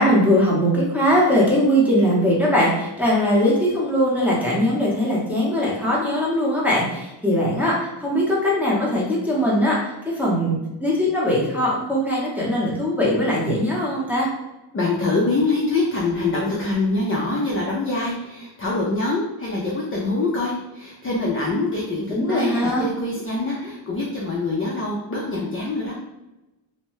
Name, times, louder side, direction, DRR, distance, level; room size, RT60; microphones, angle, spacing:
voice 1, 0.0-14.3 22.1-22.9, equal, 5° right, -7 dB, 0.7 m, -20 dB
voice 2, 14.7-26.0, left 2 dB, 30° left, -4 dB, 0.4 m, -24 dB
2.7 x 2.1 x 3.0 m, 1.0 s
wide cardioid pair, 160°, 47 cm